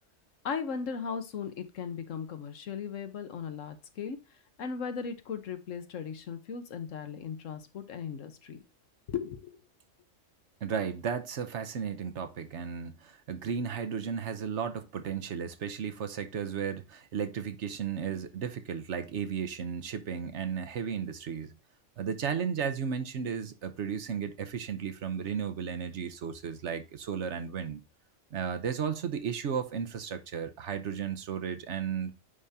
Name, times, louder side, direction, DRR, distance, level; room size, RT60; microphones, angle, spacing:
voice 1, 0.4-4.2 4.6-8.6 9.1-9.6, left 6 dB, 80° left, 1.3 m, -37 dB
voice 2, 10.6-21.6 22.0-27.8 28.3-32.1, right 7 dB, 65° right, 1.1 m, -34 dB
9.8 x 3.6 x 2.7 m
omnidirectional pair, 1.3 m